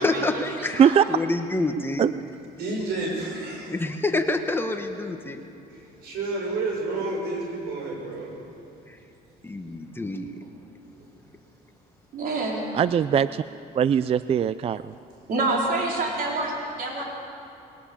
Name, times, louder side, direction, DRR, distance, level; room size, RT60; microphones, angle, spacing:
voice 1, 0.0-2.0 3.7-5.4 8.9-9.0 9.4-10.3, left 2 dB, 15° left, 5 dB, 1.4 m, -27 dB
voice 2, 2.6-3.7 5.7-8.3 10.9-11.0, right 2 dB, 75° right, -1 dB, 6.6 m, -30 dB
voice 3, 12.1-12.6 15.3-17.0, right 2 dB, 60° right, -2 dB, 4.5 m, -27 dB
voice 4, 12.7-13.4 13.7-14.9, right 8 dB, 35° right, 15 dB, 0.4 m, -20 dB
21.0 x 18.5 x 7.1 m, 2.7 s
cardioid pair, 110°, 17 cm